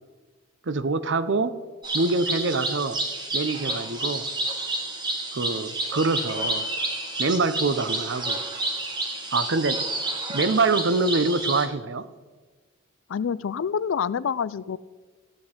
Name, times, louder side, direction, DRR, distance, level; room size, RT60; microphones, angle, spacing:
voice 1, 0.7-1.6 1.9-3.0 3.3-4.3 5.3-6.6 7.2-8.4 9.3-9.8 10.3-12.1, right 3 dB, 60° right, 13 dB, 0.6 m, -25 dB
sound 1, 1.8-11.7, right 2 dB, 20° right, 1.3 m, -30 dB
voice 2, 13.1-14.8, left 7 dB, 65° left, 19 dB, 0.4 m, -27 dB
15.0 x 8.6 x 4.3 m, 1.4 s
head